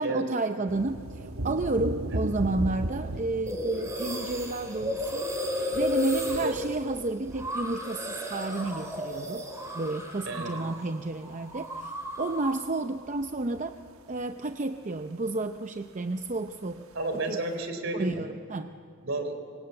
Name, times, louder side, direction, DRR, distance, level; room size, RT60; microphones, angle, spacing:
voice 1, 0.0-5.3 5.7-9.5 9.7-13.8 14.1-16.9 17.3-17.4 17.9-18.8, right 2 dB, 35° right, 7 dB, 0.6 m, -31 dB
sound 1, 0.7-15.4 15.7-15.8 15.9-17.6, right 1 dB, 80° right, 1.2 m, -38 dB
sound 2, 3.5-10.9 11.1-12.7, left 1 dB, 15° right, 4.9 m, -34 dB
voice 2, 10.3-10.6 16.9-18.3 19.0-19.4, right 2 dB, 60° right, 7 dB, 3.7 m, -31 dB
26.0 x 24.0 x 7.9 m, 2.5 s
head